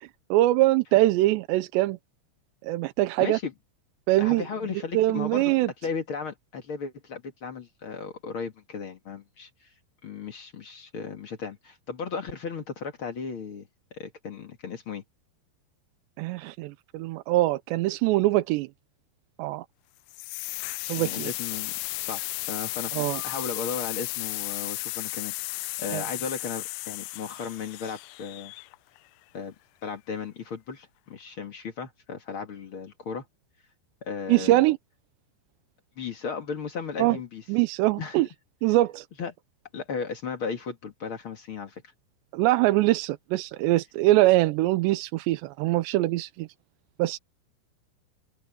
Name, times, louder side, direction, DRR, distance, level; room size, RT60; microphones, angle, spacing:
voice 1, 0.0-2.0 2.6-3.4 4.1-4.5 4.9-5.7 16.2-18.7 19.4-19.7 20.9-21.3 22.9-23.2 25.9-26.0 34.3-34.8 37.0-37.2 37.5-38.3 38.6-39.1 42.3-46.5 47.0-47.2, right 17 dB, 90° right, 3.0 m, -23 dB
voice 2, 3.2-3.5 4.2-5.5 5.8-9.7 10.0-15.0 21.0-21.7 22.0-28.5 29.3-29.5 29.8-33.2 34.0-34.6 36.0-37.4 38.0-38.2 39.2-39.3 39.7-41.8, left 5 dB, 45° left, 1.8 m, -35 dB
sound 1, 20.1-29.0, left 22 dB, 85° left, 2.7 m, -34 dB
open air
omnidirectional pair, 4.9 m